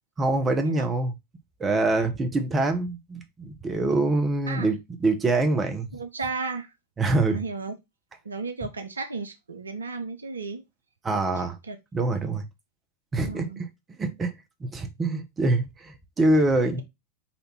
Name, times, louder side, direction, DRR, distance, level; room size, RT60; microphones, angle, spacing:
voice 1, 0.2-1.1 1.6-5.9 7.0-7.4 11.0-11.6 11.9-12.4 13.1-13.7 14.0-14.3 14.7-16.8, right 2 dB, 20° right, 0.9 m, -25 dB
voice 2, 5.9-6.7 7.2-7.7 8.2-10.6 11.4-11.8 13.3-13.6, right 4 dB, 75° right, 0.6 m, -34 dB
4.3 x 2.6 x 4.1 m
figure-of-eight pair, 90°, 0 cm